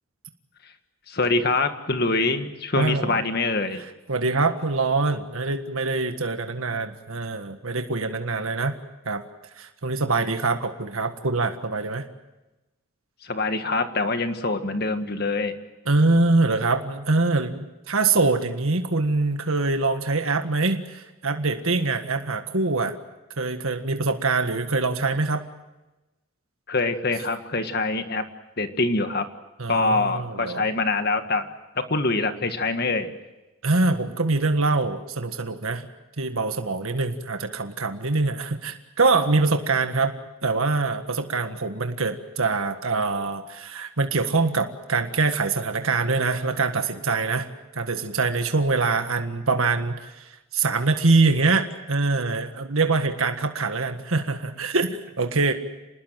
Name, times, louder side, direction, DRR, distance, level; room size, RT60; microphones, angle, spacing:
voice 1, 1.1-3.8 13.2-15.6 26.7-28.3 28.6-29.3 29.7-31.5 31.8-33.1, left 3 dB, 45° left, 8 dB, 1.8 m, -24 dB
voice 2, 2.8-3.1 4.1-8.7 9.0-9.2 9.6-12.0 15.9-22.9 23.4-25.4 29.6-30.6 33.6-35.9 36.2-40.1 40.4-47.5 47.7-55.5, right 3 dB, 70° right, 7 dB, 1.6 m, -24 dB
27.5 x 20.0 x 7.6 m, 1.0 s
head